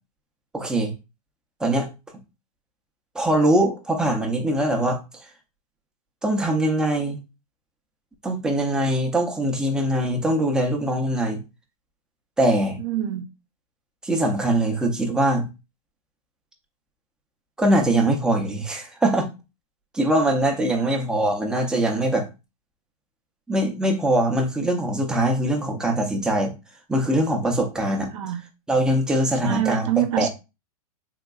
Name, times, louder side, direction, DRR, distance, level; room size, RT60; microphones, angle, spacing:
voice 1, 0.5-0.9 1.6-1.9 3.1-5.3 6.2-7.2 8.2-11.4 12.4-12.8 14.0-15.5 17.6-19.3 19.9-22.3 23.5-26.5 26.9-28.1 28.7-29.9 30.2-30.3, right 1 dB, 5° right, 0.5 m, -22 dB
voice 2, 12.8-13.3 20.7-21.0 28.1-28.4 29.4-30.3, right 12 dB, 55° right, 0.6 m, -25 dB
3.6 x 2.9 x 2.3 m
hypercardioid pair, 145°, 19 cm